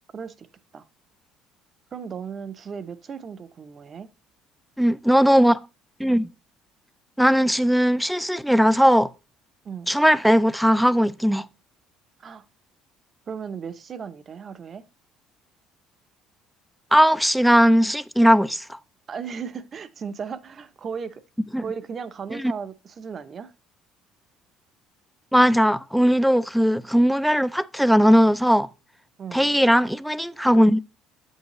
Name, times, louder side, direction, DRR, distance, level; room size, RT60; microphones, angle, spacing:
voice 1, 0.1-0.5 0.7-0.8 1.9-4.1 9.6-9.9 12.2-12.4 13.3-14.8 19.1-21.2 21.6-23.5 29.2-29.5, right 6 dB, 35° right, 0.6 m, -36 dB
voice 2, 4.8-5.6 6.0-6.3 7.2-9.1 9.9-11.5 16.9-18.8 21.5-21.6 22.4-22.5 25.3-28.7 29.3-30.8, equal, ahead, 0.3 m, -18 dB
7.6 x 5.5 x 3.0 m
cardioid pair, 110°, 0 cm